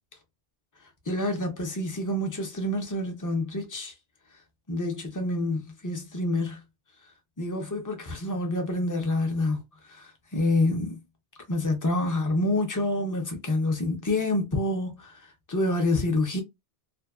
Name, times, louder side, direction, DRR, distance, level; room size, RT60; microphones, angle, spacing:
voice 1, 1.1-3.9 4.7-6.6 7.4-9.6 9.9-11.0 11.5-15.1 15.5-16.4, left 2 dB, 25° left, 0.5 m, -27 dB
2.6 x 2.2 x 2.3 m
omnidirectional pair, 1.1 m